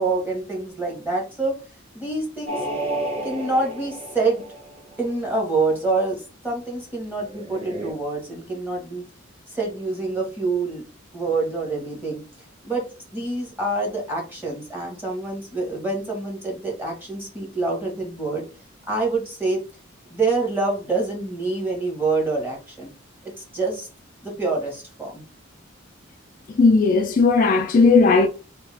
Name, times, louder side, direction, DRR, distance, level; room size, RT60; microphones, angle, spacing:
voice 1, 0.0-1.5 1.9-2.6 3.2-4.4 5.0-9.0 9.5-10.8 11.1-12.2 12.6-12.8 13.1-18.4 18.9-19.6 20.1-22.9 23.2-23.9 24.2-25.2, right 3 dB, 10° right, 1.2 m, -26 dB
sound 1, 2.5-5.1 7.2-7.9, right 1 dB, 30° right, 1.1 m, -31 dB
voice 2, 26.5-28.3, left 4 dB, 45° left, 0.3 m, -16 dB
3.3 x 2.7 x 3.3 m
head